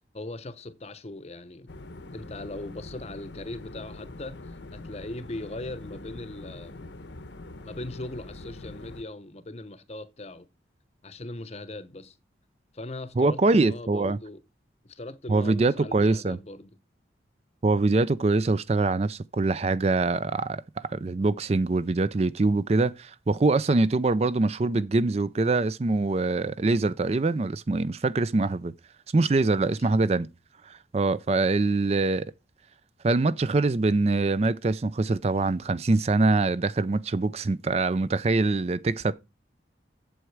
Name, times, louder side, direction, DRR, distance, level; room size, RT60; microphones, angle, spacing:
voice 1, 0.1-1.7 2.1-6.8 7.6-10.5 11.0-12.1 12.7-14.4 14.9-16.7 29.4-29.9, left 2 dB, 35° left, 0.8 m, -39 dB
sound 1, 1.7-9.0, left 2 dB, 75° left, 1.0 m, -43 dB
voice 2, 13.2-14.2 15.3-16.4 17.6-20.6 20.9-28.7 29.1-30.3 30.7-32.3 33.0-39.1, right 3 dB, 35° right, 0.4 m, -24 dB
8.0 x 7.5 x 4.6 m
head